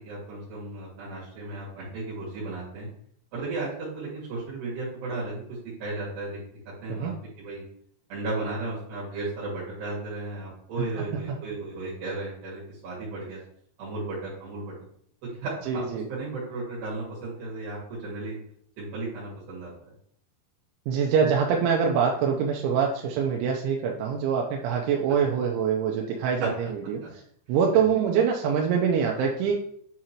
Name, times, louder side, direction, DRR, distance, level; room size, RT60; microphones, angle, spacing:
voice 1, 0.0-2.9 3.3-6.4 6.8-7.6 8.1-13.4 13.8-14.7 15.3-18.4 18.8-19.9 26.4-26.5 27.7-27.9, right 2 dB, 65° right, -7 dB, 3.9 m, -35 dB
voice 2, 10.8-11.2 15.7-16.1 20.9-27.0 27.5-29.6, right 7 dB, 85° right, 0 dB, 3.0 m, -24 dB
9.5 x 3.7 x 2.9 m, 0.64 s
omnidirectional pair, 5.5 m